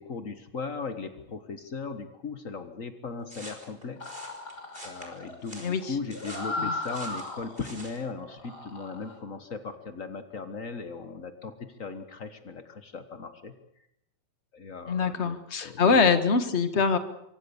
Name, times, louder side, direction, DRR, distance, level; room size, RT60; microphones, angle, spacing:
voice 1, 0.0-4.0 4.8-13.5 14.5-16.0, left 4 dB, 85° left, 8 dB, 0.7 m, -38 dB
sound 1, 3.3-8.0, right 1 dB, 15° right, 5.3 m, -46 dB
sound 2, 4.0-7.7 8.2-9.1, left 2 dB, 30° left, 4.3 m, -37 dB
voice 2, 14.9-17.0, left 5 dB, 45° left, 10 dB, 0.8 m, -24 dB
26.0 x 24.5 x 7.1 m, 0.81 s
omnidirectional pair, 3.8 m